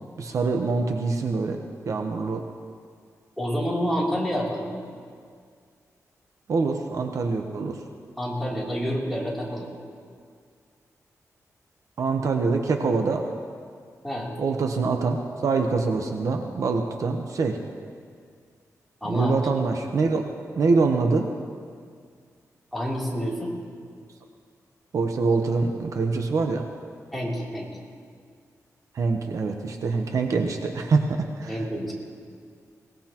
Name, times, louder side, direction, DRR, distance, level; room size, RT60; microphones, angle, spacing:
voice 1, 0.2-1.6 1.9-2.4 6.5-7.8 12.0-13.3 14.4-17.6 19.1-20.2 20.5-21.3 24.9-26.7 28.9-31.6, right 4 dB, 60° right, 4 dB, 0.9 m, -24 dB
voice 2, 3.4-4.7 8.2-9.7 14.0-14.3 19.0-19.4 22.7-23.5 27.1-27.7 31.5-31.9, equal, ahead, -5 dB, 3.1 m, -28 dB
22.0 x 19.0 x 3.0 m, 2.1 s
wide cardioid pair, 135°, 6 cm